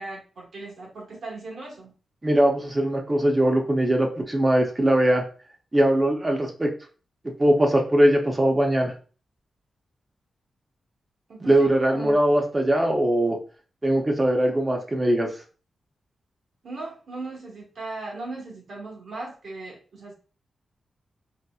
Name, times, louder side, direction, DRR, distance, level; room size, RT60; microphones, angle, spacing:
voice 1, 0.0-1.9 11.3-12.2 16.6-20.1, right 2 dB, 75° right, -3 dB, 1.3 m, -38 dB
voice 2, 2.2-5.2 5.7-6.7 7.4-8.9 11.5-13.4 13.8-15.3, right 1 dB, 25° right, 2 dB, 0.6 m, -21 dB
4.1 x 2.0 x 2.3 m, 0.38 s
cardioid pair, 90°, 0 cm